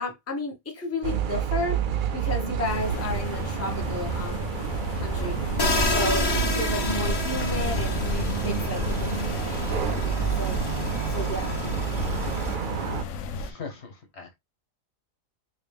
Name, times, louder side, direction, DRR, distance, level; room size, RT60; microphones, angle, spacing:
voice 1, 0.0-1.8 2.1-4.5 4.9-5.6 5.9-9.6 9.8-10.6 11.1-11.7, left 2 dB, 15° left, 0.8 m, -33 dB
sound 1, 1.0-13.0, right 8 dB, 60° right, 0.5 m, -29 dB
sound 2, 2.6-13.5, left 4 dB, 85° left, 1.0 m, -32 dB
sound 3, 5.6-12.6, left 2 dB, 30° left, 0.4 m, -31 dB
voice 2, 13.3-14.3, left 4 dB, 55° left, 1.2 m, -40 dB
3.1 x 3.0 x 3.4 m
omnidirectional pair, 1.4 m